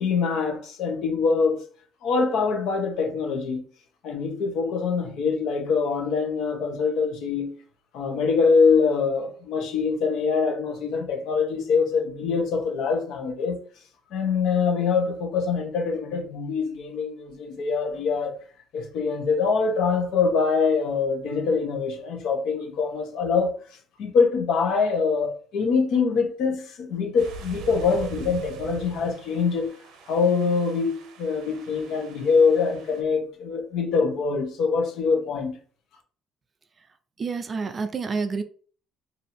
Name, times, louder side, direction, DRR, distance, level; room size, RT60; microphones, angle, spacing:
voice 1, 0.0-1.6 2.0-3.6 4.0-7.6 7.9-13.6 14.1-18.4 18.7-23.5 24.0-29.7 30.1-35.5, left 5 dB, 70° left, 0.9 m, -24 dB
sound 1, 27.2-33.0, right 5 dB, 80° right, 0.7 m, -41 dB
voice 2, 37.2-38.4, right 4 dB, 30° right, 0.4 m, -28 dB
2.8 x 2.6 x 4.2 m
cardioid pair, 125°, 0 cm